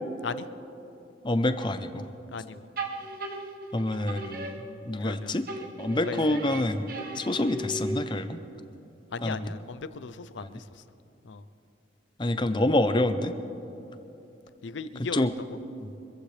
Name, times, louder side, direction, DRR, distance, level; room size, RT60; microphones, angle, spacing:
voice 1, 1.2-2.0 3.7-5.5 5.8-8.4 9.2-9.5 10.4-10.6 12.2-13.3 15.1-15.3 15.8-15.9, left 1 dB, 25° left, 9 dB, 0.6 m, -27 dB
voice 2, 2.3-2.7 5.0-5.3 5.9-6.4 9.1-10.8 11.2-11.4 14.6-15.6, left 4 dB, 80° left, 14 dB, 0.6 m, -37 dB
sound 1, 2.8-5.1 5.5-8.3, right 2 dB, 50° right, 1.2 m, -37 dB
24.5 x 15.0 x 3.3 m, 2.9 s
head